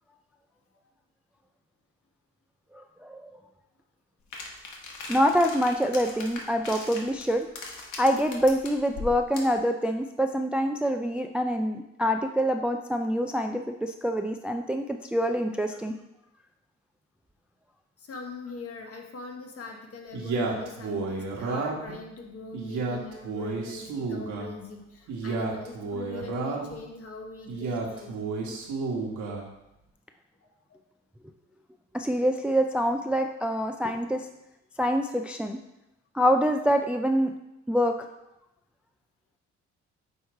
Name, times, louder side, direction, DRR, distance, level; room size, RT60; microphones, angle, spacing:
sound 1, 4.3-9.6, left 3 dB, 75° left, 1.2 m, -40 dB
voice 1, 5.1-7.5 8.0-15.9 31.9-34.3 34.8-35.6 36.1-37.3 37.7-38.0, equal, 5° right, 5 dB, 0.3 m, -25 dB
voice 2, 18.0-28.2, left 3 dB, 50° left, 2 dB, 1.3 m, -42 dB
Male speech man speaking, 20.1-22.0 22.5-24.5 25.1-26.8 27.5-29.5, right 3 dB, 80° right, 1.3 m, -31 dB
8.2 x 3.1 x 4.6 m, 0.89 s
cardioid pair, 90°, 30 cm